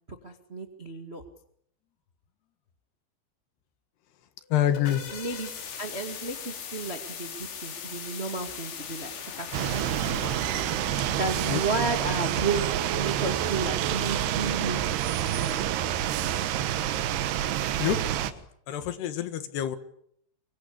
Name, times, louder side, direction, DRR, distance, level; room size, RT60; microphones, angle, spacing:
voice 1, 0.1-1.2 4.8-5.5 5.8-9.1 9.4-10.3 11.2-15.8, right 3 dB, 90° right, 5 dB, 0.5 m, -33 dB
sound 1, 4.4-11.7, left 7 dB, 90° left, 5.9 m, -40 dB
voice 2, 4.5-5.0 11.4-11.6 17.8-19.8, left 11 dB, 70° left, 11 dB, 3.6 m, -28 dB
sound 2, 9.5-18.3, right 11 dB, 70° right, 3.1 m, -28 dB
24.5 x 24.0 x 8.6 m, 0.71 s
omnidirectional pair, 5.2 m